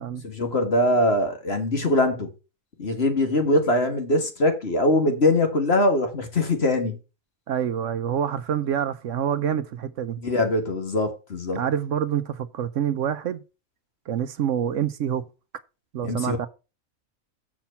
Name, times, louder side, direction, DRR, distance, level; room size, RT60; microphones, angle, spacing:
voice 1, 0.2-2.3 2.8-7.0 10.2-11.6 16.0-16.4, left 1 dB, 50° left, 2.0 m, -22 dB
voice 2, 7.5-10.2 11.5-13.4 14.1-15.2 15.9-16.5, right 9 dB, 65° right, 1.0 m, -26 dB
7.2 x 5.9 x 5.6 m
omnidirectional pair, 1.4 m